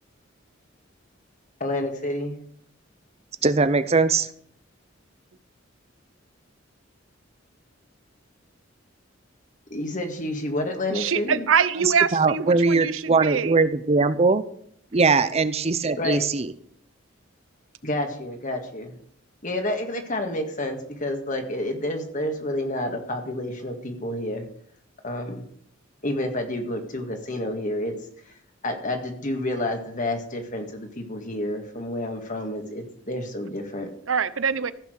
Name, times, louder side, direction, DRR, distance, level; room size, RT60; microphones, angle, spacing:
voice 1, 1.6-2.4 9.7-11.4 16.0-16.2 17.8-19.0 19.4-24.5 25.0-25.4 26.0-27.9 28.6-33.9, left 1 dB, 40° left, 5 dB, 1.9 m, -29 dB
voice 2, 3.4-4.3 11.8-14.4 14.9-16.5, right 4 dB, 35° right, 13 dB, 0.7 m, -21 dB
voice 3, 10.9-13.6 34.1-34.7, right 6 dB, 85° right, 16 dB, 0.7 m, -24 dB
15.0 x 5.9 x 6.4 m, 0.65 s
head